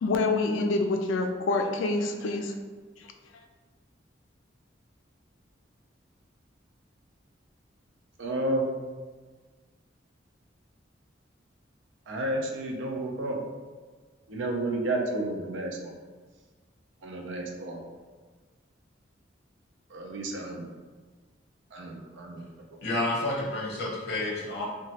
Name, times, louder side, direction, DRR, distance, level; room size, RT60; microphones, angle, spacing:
voice 1, 0.0-2.5, left 3 dB, 85° left, 4 dB, 0.3 m, -26 dB
voice 2, 8.2-8.7 12.1-13.4 14.3-15.9 17.0-17.8 19.9-20.6 21.7-22.4, right 1 dB, 75° right, 2 dB, 0.5 m, -31 dB
voice 3, 22.8-24.6, left 2 dB, 55° left, -4 dB, 0.8 m, -30 dB
2.9 x 2.2 x 2.8 m, 1.4 s
head